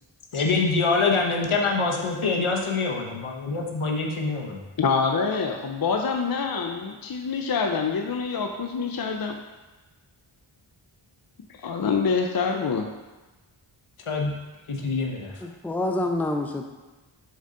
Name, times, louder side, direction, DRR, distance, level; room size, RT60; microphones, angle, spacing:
voice 1, 0.3-4.6 14.1-14.4 14.7-15.3, left 4 dB, 75° left, 0 dB, 1.0 m, -25 dB
voice 2, 4.8-9.4 11.6-12.9, left 5 dB, 45° left, 3 dB, 0.5 m, -26 dB
voice 3, 15.4-16.7, left 2 dB, 5° left, 4 dB, 0.5 m, -27 dB
7.1 x 4.0 x 3.7 m, 1.2 s
wide cardioid pair, 55°, 49 cm